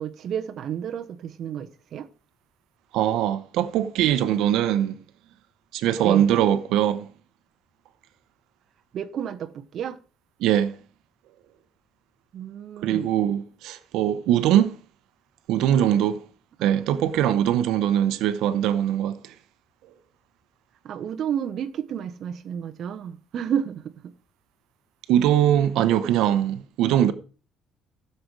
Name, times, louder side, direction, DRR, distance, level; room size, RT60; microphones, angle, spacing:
voice 1, 0.0-2.1 6.0-6.3 8.9-10.0 12.3-13.1 16.6-17.5 20.8-24.1, right 8 dB, 45° right, 1.0 m, -31 dB
voice 2, 2.9-5.0 5.7-7.1 10.4-10.8 12.8-14.7 15.5-16.2 16.6-19.3 25.1-27.1, right 11 dB, 80° right, 0.9 m, -22 dB
15.5 x 6.8 x 4.7 m
cardioid pair, 165°, 0 cm